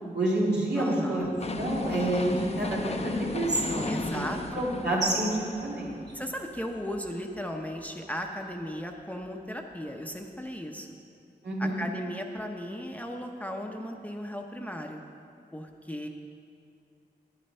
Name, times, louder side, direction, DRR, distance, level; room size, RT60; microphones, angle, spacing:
voice 1, 0.1-1.3 1.6-3.9 4.6-6.0 11.4-11.8, right 1 dB, 75° right, -5 dB, 2.4 m, -28 dB
voice 2, 0.7-1.4 3.9-4.6 6.1-11.0 11.6-15.0 15.5-16.1, equal, 10° left, 2 dB, 0.9 m, -36 dB
sound 1, 1.4-7.4 7.8-7.9, left 2 dB, 40° left, 0.7 m, -35 dB
9.2 x 7.6 x 5.6 m, 2.5 s
cardioid pair, 40°, 18 cm